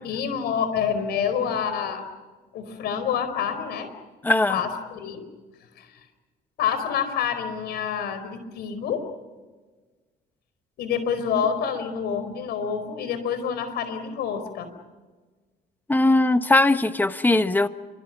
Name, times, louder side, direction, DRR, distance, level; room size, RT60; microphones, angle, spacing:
voice 1, 0.0-2.0 2.5-3.9 4.5-5.2 5.8-5.9 6.6-9.1 10.8-14.7, left 7 dB, 75° left, 10 dB, 4.6 m, -27 dB
voice 2, 4.2-4.6 15.9-17.7, left 2 dB, 10° left, 10 dB, 1.3 m, -20 dB
29.5 x 25.0 x 6.1 m, 1.3 s
cardioid pair, 110°, 17 cm